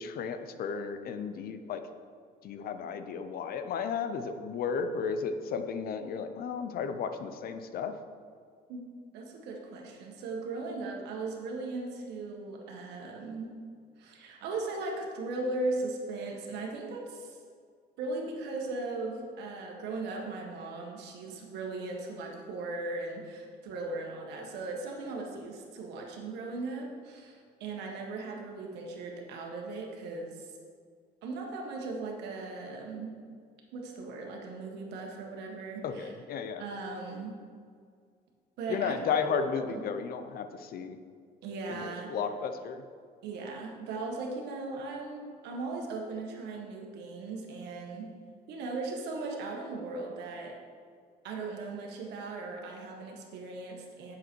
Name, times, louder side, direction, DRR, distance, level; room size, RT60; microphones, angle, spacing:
voice 1, 0.0-1.8 2.4-7.9 35.8-36.6 38.7-41.0 41.7-42.8, left 6 dB, 60° left, 9 dB, 0.7 m, -34 dB
voice 2, 9.1-13.5 14.0-17.4 18.0-30.5 31.2-33.1 33.7-36.1 36.6-37.3 38.6-39.0 39.3-39.8 41.4-42.1 43.2-48.1 48.5-50.6 51.2-54.2, right 3 dB, 85° right, 1 dB, 1.5 m, -38 dB
8.0 x 6.9 x 4.6 m, 2.1 s
cardioid pair, 110°, 17 cm